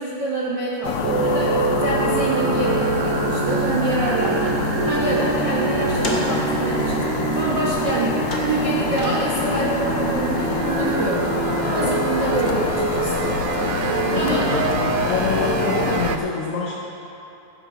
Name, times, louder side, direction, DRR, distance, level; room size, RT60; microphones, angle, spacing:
voice 1, 0.0-7.1 7.3-13.3 14.1-14.5, right 1 dB, 65° right, -6 dB, 1.1 m, -26 dB
sound 1, 0.8-16.2, left 8 dB, 85° left, 1.5 m, -26 dB
sound 2, 1.0-16.2, right 7 dB, 90° right, 1.6 m, -25 dB
sound 3, 5.8-12.5, left 1 dB, 55° left, 0.7 m, -37 dB
voice 2, 14.1-16.8, left 4 dB, 70° left, -4 dB, 1.4 m, -26 dB
15.5 x 7.2 x 5.1 m, 2.9 s
omnidirectional pair, 3.8 m